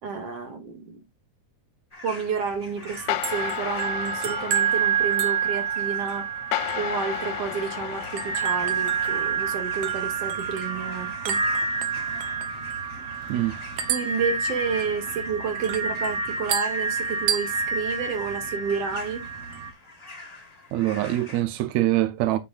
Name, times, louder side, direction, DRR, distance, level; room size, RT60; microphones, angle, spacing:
voice 1, 0.0-1.0 2.0-6.3 6.8-11.4 13.9-19.2, right 5 dB, 50° right, 2.8 m, -30 dB
sound 1, 1.9-21.4, left 3 dB, 40° left, 0.5 m, -45 dB
sound 2, 2.8-19.7, right 6 dB, 65° right, 1.6 m, -28 dB
sound 3, 3.1-9.9, left 15 dB, 80° left, 2.2 m, -34 dB
voice 2, 20.7-22.4, right 15 dB, 80° right, 1.6 m, -24 dB
9.4 x 7.4 x 2.5 m
omnidirectional pair, 4.1 m